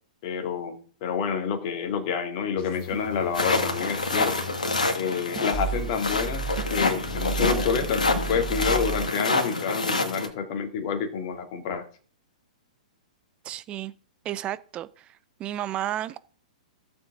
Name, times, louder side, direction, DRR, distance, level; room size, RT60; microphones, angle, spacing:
voice 1, 0.2-4.5 5.0-11.9, left 6 dB, 45° left, 2.1 m, -29 dB
sound 1, 2.4-3.7 4.2-4.7 5.3-5.8 6.6-7.0 7.8-8.2 8.8-9.4 9.6-9.7, right 5 dB, 40° right, 4.6 m, -42 dB
sound 2, 2.6-4.9 5.5-9.1, right 4 dB, 30° left, 1.8 m, -34 dB
sound 3, 3.3-10.3, left 3 dB, 80° left, 2.0 m, -27 dB
voice 2, 13.4-13.9 14.2-16.2, right 12 dB, 25° right, 0.6 m, -32 dB
16.0 x 7.2 x 3.8 m
figure-of-eight pair, 115°, 4 cm